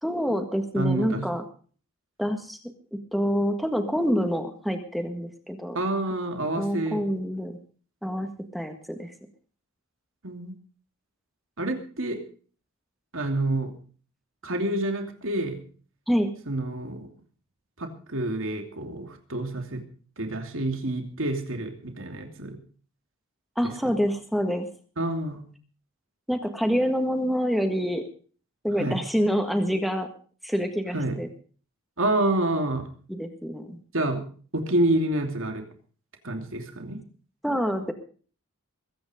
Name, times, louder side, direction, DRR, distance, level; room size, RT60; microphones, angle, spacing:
voice 1, 0.0-1.4 2.2-2.6 2.9-5.8 6.5-7.6 8.0-9.1 16.1-16.3 23.5-24.7 26.3-28.1 28.6-30.1 30.4-31.3 33.1-33.8 37.4-37.9, equal, ahead, 6 dB, 1.6 m, -27 dB
voice 2, 0.7-1.3 5.7-7.0 10.2-10.5 11.6-12.2 13.1-13.7 14.4-15.6 16.5-17.1 17.8-19.8 20.2-22.6 25.0-25.4 28.8-29.0 30.9-31.2 32.0-32.8 33.9-34.2 34.5-35.6 36.2-37.0, right 1 dB, 65° right, 5 dB, 2.8 m, -28 dB
21.5 x 9.5 x 5.1 m, 0.42 s
head